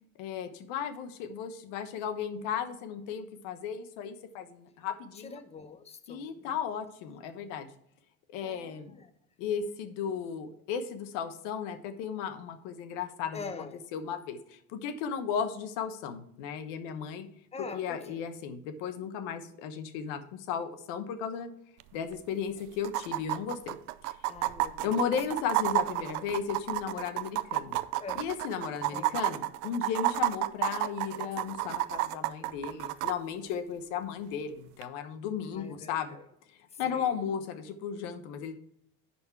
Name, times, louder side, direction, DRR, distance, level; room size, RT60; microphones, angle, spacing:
voice 1, 0.2-5.4 6.1-7.7 8.3-8.9 9.4-13.4 13.9-17.3 17.7-20.2 20.5-21.5 21.9-23.8 24.0-24.1 24.8-27.8 28.1-36.2 36.8-38.5, left 7 dB, 75° left, 9 dB, 1.2 m, -35 dB
voice 2, 5.2-6.6 7.3-7.5 8.4-9.1 13.3-13.8 17.5-18.3 24.3-25.1 26.0-26.3 28.0-28.3 28.9-29.2 35.4-36.2 36.7-37.1, left 4 dB, 15° left, 8 dB, 0.9 m, -45 dB
sound 1, 21.8-21.9 22.1-22.2 22.8-33.1 34.8-34.9, right 17 dB, 80° right, 0.6 m, -31 dB
10.5 x 4.3 x 4.6 m, 0.73 s
supercardioid pair, 85°, 43 cm